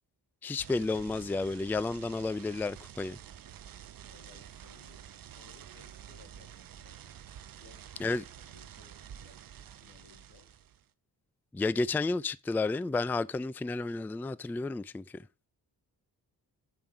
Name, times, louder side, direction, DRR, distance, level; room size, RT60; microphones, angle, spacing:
voice 1, 0.4-3.2 8.0-8.2 11.5-15.2, left 3 dB, 5° left, 0.3 m, -31 dB
sound 1, 0.6-10.8, right 9 dB, 60° right, 0.7 m, -49 dB
voice 2, 4.0-7.1 7.6-10.5, left 5 dB, 90° left, 1.9 m, -61 dB
8.9 x 5.3 x 4.6 m
supercardioid pair, 50°, 39 cm